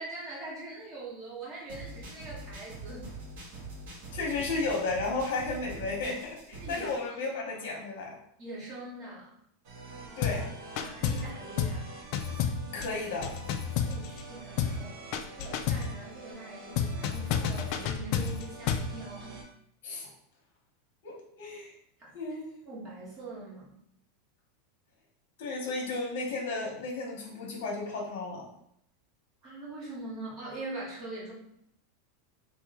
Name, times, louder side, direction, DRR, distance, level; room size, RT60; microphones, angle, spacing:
voice 1, 0.0-3.0 6.6-7.7 8.4-9.3 10.8-11.9 13.8-15.0 15.3-19.4 22.0-22.1 22.6-23.7 29.4-31.3, right 2 dB, 25° right, -7 dB, 1.5 m, -42 dB
sound 1, 1.7-7.0, right 2 dB, 70° right, 1.3 m, -44 dB
voice 2, 4.1-8.2 10.2-10.5 12.6-13.4 19.8-20.1 21.0-21.7 22.1-22.5 25.4-28.5, left 3 dB, 70° left, -1 dB, 1.0 m, -33 dB
sound 2, 9.6-19.4, right 2 dB, 55° right, 0.9 m, -47 dB
sound 3, 10.2-10.5 10.8-11.3 11.6-11.8 12.1-14.3 14.6-14.8 15.1-15.9 16.8-18.9, left 7 dB, 45° left, 0.3 m, -30 dB
3.0 x 2.7 x 3.5 m, 0.72 s
supercardioid pair, 155°, 0 cm